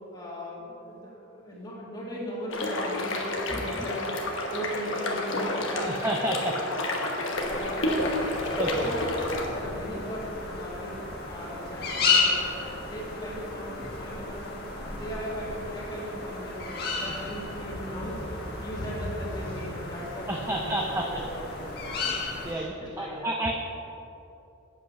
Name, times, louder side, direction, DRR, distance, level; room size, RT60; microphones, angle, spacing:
voice 1, 0.1-3.2 3.5-4.1 4.5-5.9 6.2-6.4 7.1-8.3 8.7-10.9 11.3-12.4 12.9-18.2 18.6-23.3, equal, 20° left, -6 dB, 1.8 m, -38 dB
sound 1, 2.5-9.5, left 1 dB, 70° left, 1.2 m, -30 dB
voice 2, 3.5-3.9 5.7-6.6 6.9-7.1 8.6-8.9 20.3-21.2 22.1-23.5, right 1 dB, 10° right, 1 dB, 0.4 m, -31 dB
sound 2, 7.3-22.5, left 4 dB, 50° left, 1.6 m, -33 dB
8.5 x 7.7 x 5.6 m, 3.0 s
head